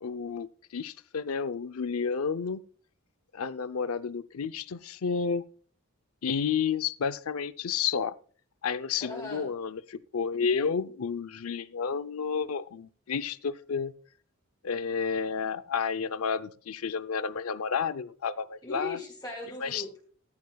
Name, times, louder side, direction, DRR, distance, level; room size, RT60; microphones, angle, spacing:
voice 1, 0.0-2.6 3.3-5.4 6.2-8.1 8.6-13.9 14.6-19.0 19.6-19.8, left 6 dB, 80° left, 0.6 m, -31 dB
voice 2, 9.0-9.5 18.6-20.0, left 2 dB, 20° left, 5.0 m, -38 dB
15.0 x 14.5 x 2.3 m
head